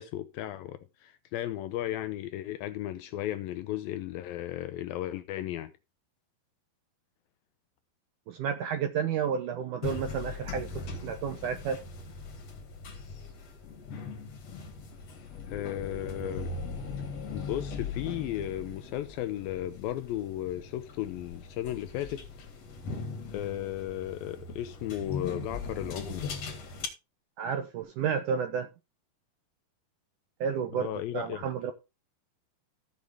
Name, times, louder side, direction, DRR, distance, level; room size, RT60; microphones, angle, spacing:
voice 1, 0.0-5.7 15.5-16.5 17.3-22.2 23.3-26.3 30.7-31.5, left 13 dB, 80° left, 2.2 m, -35 dB
voice 2, 8.3-11.8 27.4-28.7 30.4-31.7, right 7 dB, 75° right, 1.9 m, -31 dB
sound 1, 9.8-26.9, left 4 dB, 45° left, 2.6 m, -40 dB
15.5 x 6.5 x 3.4 m
omnidirectional pair, 4.6 m